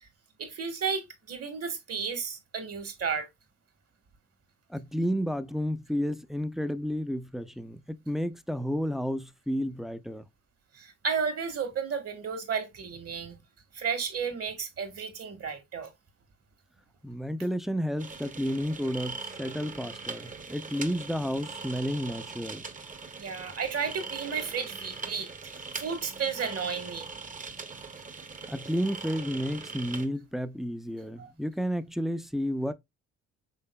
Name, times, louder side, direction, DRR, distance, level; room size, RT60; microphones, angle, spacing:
voice 1, 0.4-3.3 10.7-13.4 13.7-15.9 23.1-27.1 31.2-31.3, right 6 dB, 50° right, 1.6 m, -33 dB
voice 2, 4.7-10.3 17.0-22.6 28.5-32.7, equal, ahead, 0.4 m, -31 dB
sound 1, 18.0-30.1, right 4 dB, 25° right, 0.8 m, -41 dB
5.5 x 3.8 x 2.2 m
cardioid pair, 90°, 30 cm